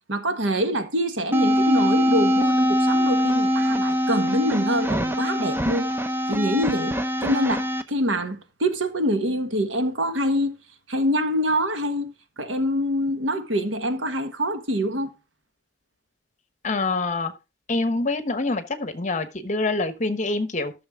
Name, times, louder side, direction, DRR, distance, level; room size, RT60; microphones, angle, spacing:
voice 1, 0.1-5.9 6.3-10.5 10.9-15.1, equal, 85° right, 1.5 m, -25 dB
sound 1, 1.3-7.8, equal, 10° right, 0.7 m, -22 dB
voice 2, 16.6-17.3 17.7-20.7, left 3 dB, 40° left, 1.1 m, -25 dB
12.5 x 6.5 x 3.6 m
head